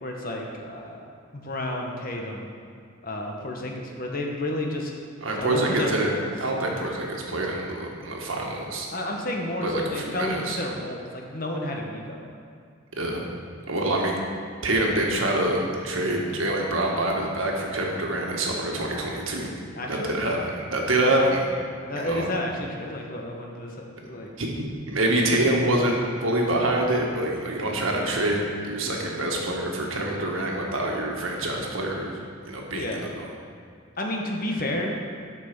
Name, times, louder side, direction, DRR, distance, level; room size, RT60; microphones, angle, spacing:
voice 1, 0.0-1.0 1.3-2.5 3.0-4.9 5.3-6.2 8.9-12.2 19.7-20.2 21.9-24.3 32.7-33.1 34.0-34.9, left 1 dB, 45° left, 0 dB, 1.1 m, -31 dB
voice 2, 5.2-6.1 6.4-8.9 9.6-10.6 13.0-13.2 13.7-14.2 14.6-19.5 19.9-21.5 21.9-22.3 24.4-32.2 32.4-33.3, right 1 dB, 80° right, -1 dB, 1.5 m, -26 dB
8.6 x 6.1 x 6.0 m, 2.3 s
head